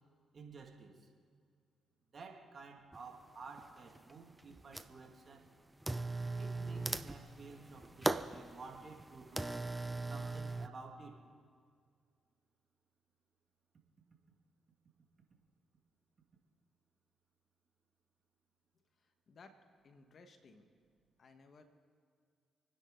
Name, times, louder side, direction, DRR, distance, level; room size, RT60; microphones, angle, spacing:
voice 1, 0.3-1.1 2.1-5.5 6.3-9.6 10.1-11.2, right 4 dB, 50° right, 2 dB, 2.5 m, -52 dB
sound 1, 2.9-3.0 3.6-4.1 4.4-5.1 5.8-10.7, right 2 dB, 15° right, 0.8 m, -39 dB
voice 2, 19.3-19.6 19.8-20.7 21.2-21.6, left 4 dB, 55° left, 6 dB, 1.7 m, -59 dB
28.5 x 10.0 x 4.0 m, 2.2 s
supercardioid pair, 50°, 0 cm